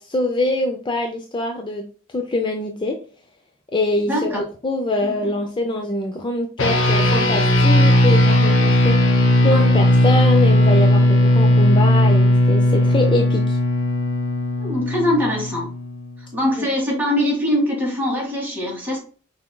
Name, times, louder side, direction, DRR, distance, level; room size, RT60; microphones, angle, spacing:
voice 1, 0.0-1.9 2.1-3.0 3.7-13.6 16.6-16.7, left 2 dB, 25° left, 3 dB, 0.5 m, -24 dB
voice 2, 4.1-4.4 5.0-5.3 14.6-15.7 16.3-19.0, left 1 dB, 10° right, -3 dB, 1.9 m, -22 dB
sound 1, 6.6-16.2, left 1 dB, 75° left, 0.8 m, -16 dB
5.9 x 3.5 x 2.2 m, 0.40 s
head